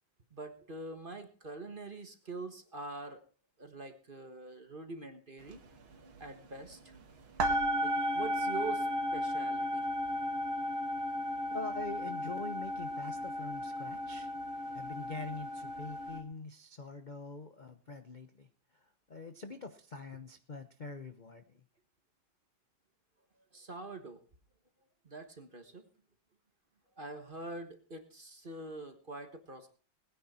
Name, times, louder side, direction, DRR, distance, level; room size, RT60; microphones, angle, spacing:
voice 1, 0.3-3.2 3.6-5.6 6.2-7.0 7.8-9.9 23.5-24.2 25.0-25.9 27.0-29.7, right 3 dB, 30° right, 7 dB, 1.4 m, -44 dB
sound 1, 5.5-5.7 5.9-7.0 7.4-16.2, equal, 85° right, 2.6 m, -34 dB
voice 2, 11.5-14.3 14.7-18.5 19.1-21.4, left 3 dB, 45° left, 8 dB, 0.6 m, -44 dB
20.0 x 10.0 x 4.3 m, 0.40 s
omnidirectional pair, 2.2 m